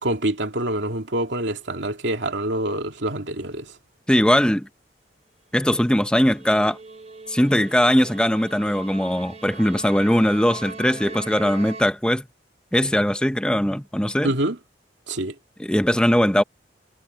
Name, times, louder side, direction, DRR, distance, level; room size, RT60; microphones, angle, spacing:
voice 1, 0.0-3.7 14.2-14.6 15.1-15.3, right 1 dB, 80° right, 2.5 m, -26 dB
voice 2, 4.1-4.7 5.5-6.8 7.3-12.2 12.7-14.3 15.6-16.4, equal, 5° left, 0.9 m, -20 dB
sound 1, 5.9-11.8, right 3 dB, 35° right, 1.3 m, -39 dB
head